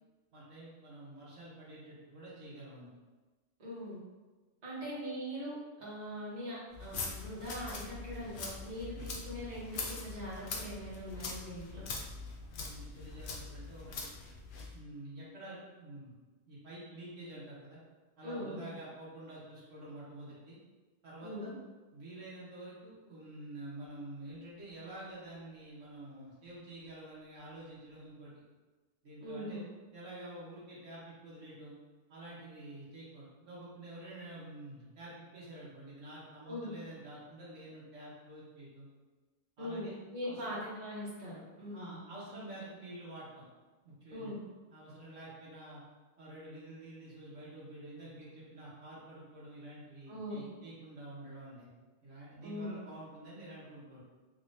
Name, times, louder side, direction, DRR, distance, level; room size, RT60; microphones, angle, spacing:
voice 1, 0.3-2.9 8.9-9.0 12.5-14.1 14.7-16.1 16.5-17.8 18.2-20.6 21.0-21.5 21.9-28.3 29.0-29.6 29.9-31.7 32.1-38.9 39.6-40.0 40.2-40.6 41.7-43.4 43.8-44.3 44.7-45.8 46.2-51.7 52.0-54.0, right 1 dB, 75° right, -7 dB, 1.4 m, -48 dB
voice 2, 3.6-4.0 4.6-11.9 18.2-18.6 21.2-21.5 29.2-29.6 36.5-36.7 39.6-42.0 44.1-44.4 50.1-50.4 52.4-52.8, equal, 35° right, -7 dB, 1.1 m, -41 dB
sound 1, 6.7-14.7, left 3 dB, 60° left, 0.6 m, -43 dB
3.6 x 2.9 x 2.5 m, 1.2 s
omnidirectional pair, 1.3 m